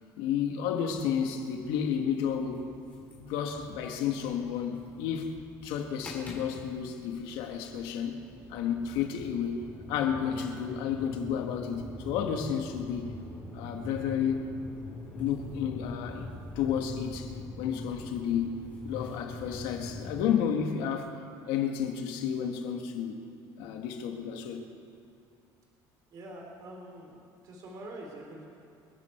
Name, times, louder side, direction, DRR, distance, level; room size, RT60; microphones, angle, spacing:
voice 1, 0.2-2.6 3.2-5.3 5.6-8.2 8.5-9.6 9.9-13.1 13.5-14.5 15.1-21.2 21.5-23.2 23.6-24.7, left 8 dB, 80° left, 3 dB, 2.0 m, -31 dB
sound 1, 0.9-20.2, left 2 dB, 15° left, 3.7 m, -45 dB
voice 2, 26.1-28.5, right 1 dB, 45° right, -1 dB, 3.5 m, -45 dB
27.5 x 10.5 x 4.6 m, 2.6 s
cardioid pair, 140°, 9 cm